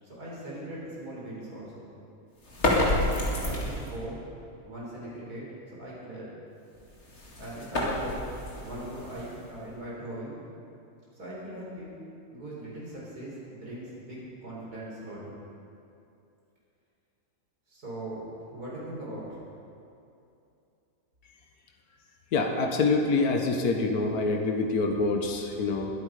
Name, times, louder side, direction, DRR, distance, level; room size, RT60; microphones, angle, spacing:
voice 1, 0.0-1.8 2.8-4.2 4.6-5.5 5.8-6.3 7.4-8.2 8.6-10.4 11.1-11.9 12.3-15.3 17.7-18.2 18.5-19.4, right 1 dB, 75° right, -6 dB, 4.6 m, -40 dB
sound 1, 2.4-4.0 6.7-9.7, left 1 dB, 45° left, 2.5 m, -29 dB
voice 2, 22.3-25.9, left 3 dB, 75° left, 3 dB, 1.7 m, -26 dB
22.0 x 8.8 x 5.0 m, 2.7 s
omnidirectional pair, 1.6 m